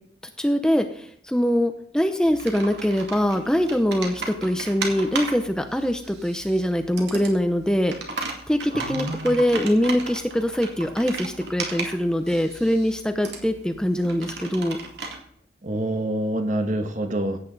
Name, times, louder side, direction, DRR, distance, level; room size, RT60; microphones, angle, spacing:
voice 1, 0.4-7.9 8.5-14.8, equal, 5° left, 7 dB, 0.7 m, -23 dB
Computer keyboard, 2.3-15.2, right 3 dB, 75° right, 2.4 m, -36 dB
voice 2, 8.7-9.4 15.6-17.4, right 1 dB, 45° right, 6 dB, 1.3 m, -27 dB
16.5 x 8.8 x 4.0 m, 0.65 s
head